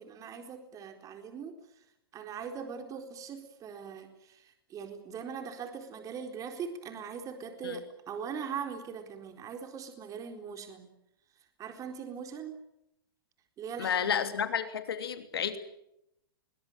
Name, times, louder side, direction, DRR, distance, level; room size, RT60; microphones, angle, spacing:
voice 1, 0.0-1.8 2.1-10.9 11.6-12.6 13.6-14.2, right 6 dB, 25° right, 6 dB, 4.2 m, -41 dB
voice 2, 13.8-15.6, left 8 dB, 80° left, 9 dB, 3.0 m, -31 dB
22.5 x 22.5 x 9.0 m, 0.81 s
hypercardioid pair, 125°, 12 cm